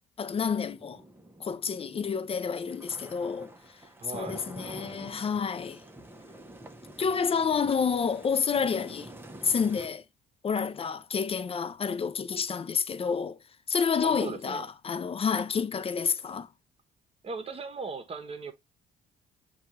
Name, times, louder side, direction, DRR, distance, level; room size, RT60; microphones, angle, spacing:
voice 1, 0.2-1.0 1.4-3.5 4.1-5.8 7.0-9.1 9.4-10.0 10.4-13.4 13.7-16.5, left 6 dB, 30° left, 0.5 m, -29 dB
sound 1, 0.8-9.9, right 1 dB, 10° right, 0.7 m, -48 dB
voice 2, 4.0-4.4 14.0-14.7 17.2-18.5, right 4 dB, 30° right, 1.0 m, -38 dB
6.3 x 2.4 x 2.9 m
supercardioid pair, 80°, 18 cm